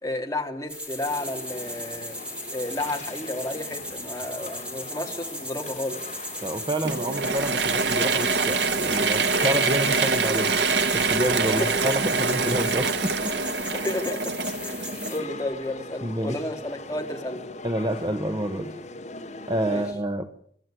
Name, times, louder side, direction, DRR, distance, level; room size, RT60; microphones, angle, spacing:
voice 1, 0.0-2.1 2.5-6.0 11.4-11.7 13.7-14.3 14.6-17.4 19.7-19.8, left 1 dB, 15° left, 1 dB, 3.1 m, -32 dB
sound 1, 0.7-15.2, equal, 5° right, 4.0 m, -37 dB
sound 2, 1.0-19.9, left 2 dB, 40° left, 2.6 m, -41 dB
voice 2, 6.4-10.5 10.9-13.3 16.0-16.4 17.6-18.7 19.5-20.3, right 1 dB, 25° right, 8 dB, 1.1 m, -28 dB
Mechanisms / Drill, 6.8-15.5, right 4 dB, 70° right, 1.2 m, -25 dB
24.5 x 13.0 x 9.0 m, 0.64 s
head